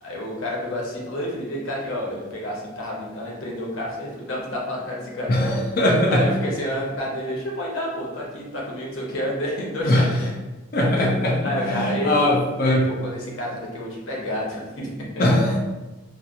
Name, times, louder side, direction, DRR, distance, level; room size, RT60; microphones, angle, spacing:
voice 1, 0.0-5.6 6.1-10.3 10.9-15.1, equal, 75° left, -3 dB, 0.7 m, -29 dB
voice 2, 5.3-6.2 9.8-10.0 10.7-12.8 15.2-15.6, left 1 dB, 45° left, -1 dB, 0.4 m, -20 dB
2.7 x 2.0 x 2.4 m, 1.1 s
head